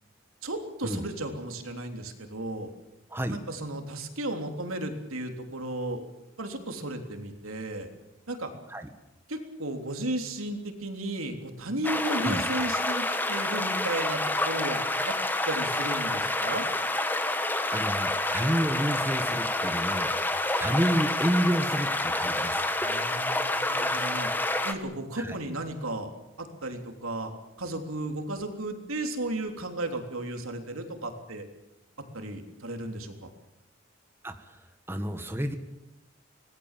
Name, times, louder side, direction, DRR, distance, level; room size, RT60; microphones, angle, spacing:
voice 1, 0.4-2.7 3.3-6.0 6.4-7.9 8.3-8.5 9.3-14.8 15.0-15.1 15.5-16.7 22.8-24.3 24.6-26.1 26.4-27.3 27.6-31.4 32.1-33.3, right 1 dB, 90° right, 5 dB, 3.4 m, -34 dB
sound 1, 11.8-24.7, left 2 dB, 10° left, 1.3 m, -28 dB
voice 2, 17.7-20.1 20.6-22.6 25.2-25.4 34.2-34.6 34.9-35.6, equal, 10° right, 7 dB, 1.6 m, -29 dB
25.0 x 19.0 x 7.5 m, 0.92 s
head